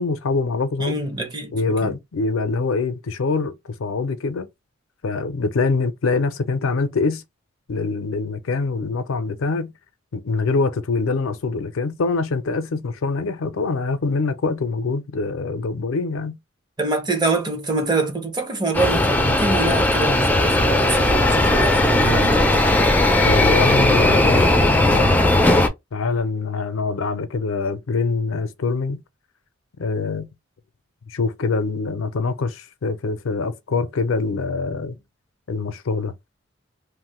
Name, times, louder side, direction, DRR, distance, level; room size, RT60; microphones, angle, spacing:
voice 1, 0.0-1.0 1.5-3.5 3.8-4.5 5.0-7.2 7.7-9.7 10.1-16.4 23.2-25.1 25.9-29.0 29.8-30.3 31.1-35.0 35.5-36.1, left 4 dB, 90° left, 0.5 m, -24 dB
voice 2, 0.8-1.9 16.8-22.4, right 3 dB, 20° right, 0.7 m, -25 dB
sound 1, 18.7-25.7, left 1 dB, 10° left, 0.4 m, -17 dB
3.0 x 2.1 x 3.0 m
head